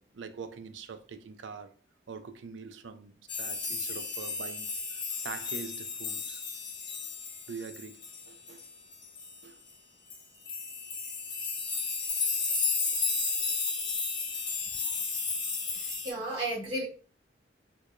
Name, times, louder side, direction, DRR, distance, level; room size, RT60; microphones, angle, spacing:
voice 1, 0.0-1.7 2.1-3.1 3.4-6.4 7.5-8.6 9.4-9.6, right 5 dB, 75° right, 0.4 m, -44 dB
sound 1, 3.3-9.4 10.1-10.2 10.5-16.1, left 4 dB, 25° left, 0.6 m, -33 dB
voice 2, 15.7-16.8, right 1 dB, 25° right, 1.5 m, -34 dB
4.6 x 2.2 x 2.4 m
head